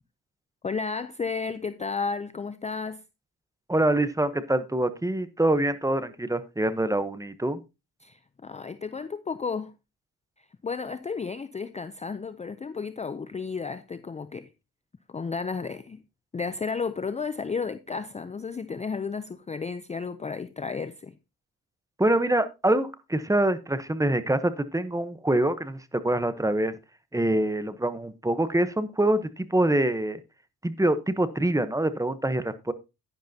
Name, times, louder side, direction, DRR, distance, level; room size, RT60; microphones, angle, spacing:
voice 1, 0.6-3.0 8.0-9.7 10.6-14.5 15.1-16.0 16.3-21.1, left 5 dB, 20° left, 0.5 m, -33 dB
voice 2, 3.7-7.6 22.0-26.7 27.1-30.2 30.6-32.7, right 1 dB, 10° right, 0.9 m, -25 dB
10.5 x 10.0 x 2.8 m
cardioid pair, 105°, 38 cm